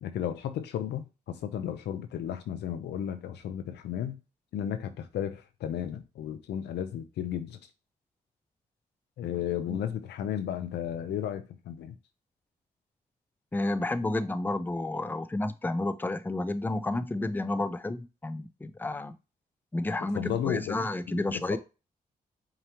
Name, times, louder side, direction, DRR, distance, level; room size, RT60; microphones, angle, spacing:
voice 1, 0.0-4.2 4.5-7.6 9.2-12.0 20.0-20.8 21.1-21.6, left 10 dB, 90° left, 0.6 m, -34 dB
voice 2, 13.5-19.1 19.7-21.6, left 2 dB, 10° left, 0.5 m, -31 dB
5.0 x 2.9 x 2.9 m
cardioid pair, 55°, 17 cm